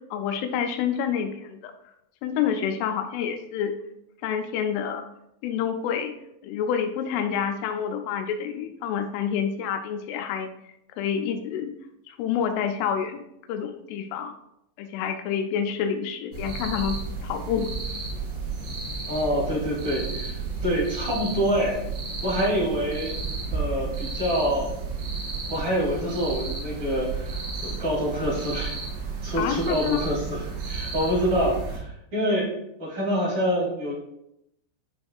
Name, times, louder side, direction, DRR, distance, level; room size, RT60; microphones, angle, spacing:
voice 1, 0.1-1.7 2.2-3.7 4.2-5.0 5.4-6.1 6.4-10.5 10.9-11.7 12.1-13.2 13.5-14.3 14.8-17.7 29.4-30.0, left 8 dB, 90° left, 6 dB, 3.1 m, -28 dB
sound 1, 16.3-31.8, right 4 dB, 85° right, 4.3 m, -32 dB
voice 2, 19.1-21.8 22.2-23.2 23.5-24.7 25.5-28.8 29.2-32.5 32.8-33.9, equal, 35° right, -5 dB, 2.1 m, -26 dB
10.5 x 5.3 x 2.3 m, 0.80 s
omnidirectional pair, 5.5 m